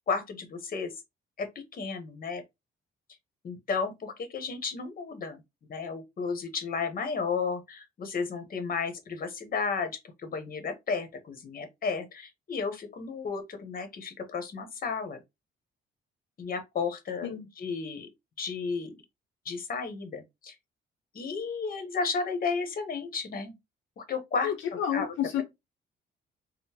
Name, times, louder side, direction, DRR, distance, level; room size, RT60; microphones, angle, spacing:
voice 1, 0.1-0.9 1.4-2.4 3.4-5.4 5.7-9.9 10.2-15.2 16.4-18.1 18.4-18.9 19.4-20.6 21.1-23.5 24.0-25.4, left 5 dB, 45° left, 0.9 m, -33 dB
voice 2, 24.4-25.4, left 10 dB, 75° left, 0.6 m, -30 dB
3.6 x 2.0 x 2.8 m
cardioid pair, 90°, 20 cm